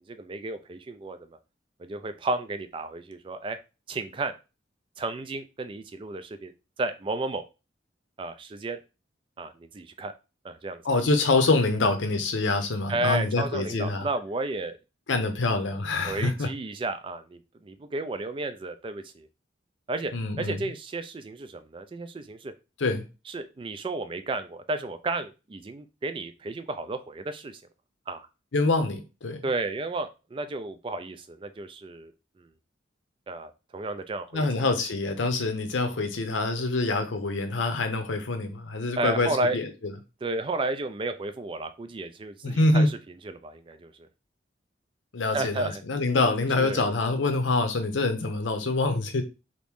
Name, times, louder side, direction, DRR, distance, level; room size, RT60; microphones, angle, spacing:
voice 1, 0.1-1.3 1.8-3.6 3.9-4.3 5.0-6.5 6.8-7.4 8.2-8.8 9.4-10.1 10.4-10.8 12.9-14.8 16.1-19.3 19.9-22.5 23.3-27.6 28.1-28.3 29.4-32.1 32.4-32.5 33.3-34.7 39.0-39.6 40.2-43.0 43.2-44.1 45.2-45.8 46.6-46.9, right 2 dB, 25° right, 0.3 m, -33 dB
voice 2, 10.8-14.1 15.1-16.5 20.1-20.6 22.8-23.0 28.5-29.4 34.3-39.9 42.4-42.9 45.1-49.2, left 3 dB, 85° left, 0.7 m, -25 dB
3.0 x 2.6 x 3.5 m
head